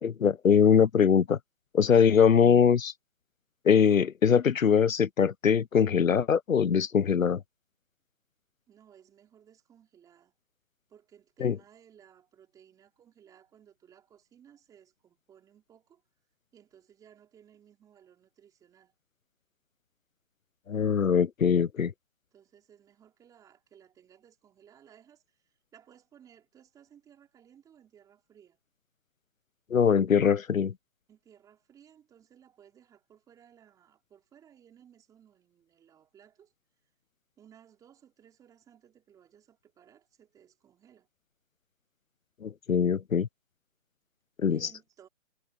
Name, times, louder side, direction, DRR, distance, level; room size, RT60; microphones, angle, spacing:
voice 1, 0.0-1.4 1.7-2.9 3.6-7.4 11.4-11.6 20.7-21.9 29.7-30.7 42.4-43.3 44.4-44.6, left 7 dB, 85° left, 0.9 m, -22 dB
voice 2, 8.7-10.3 10.9-16.0 16.5-18.9 22.3-28.6 31.1-36.5 37.4-41.1 44.5-45.1, right 9 dB, 10° right, 3.8 m, -59 dB
hypercardioid pair, 155°, 39 cm